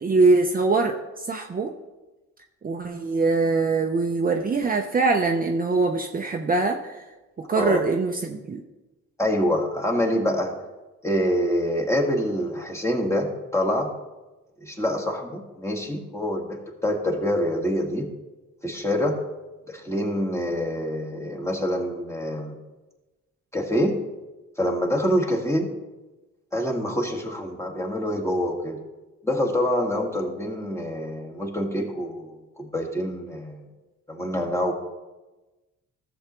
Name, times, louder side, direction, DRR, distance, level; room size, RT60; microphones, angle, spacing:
voice 1, 0.0-1.7 2.6-7.0 7.4-8.6, right 3 dB, 30° right, 2 dB, 0.7 m, -23 dB
voice 2, 9.2-10.5 11.0-13.9 14.6-18.1 18.6-19.2 19.7-22.6 23.5-24.0 24.6-25.7 26.5-28.8 29.2-33.7 34.1-34.7, equal, 10° left, 0 dB, 1.7 m, -26 dB
13.5 x 7.1 x 3.1 m, 1.1 s
cardioid pair, 90°, 30 cm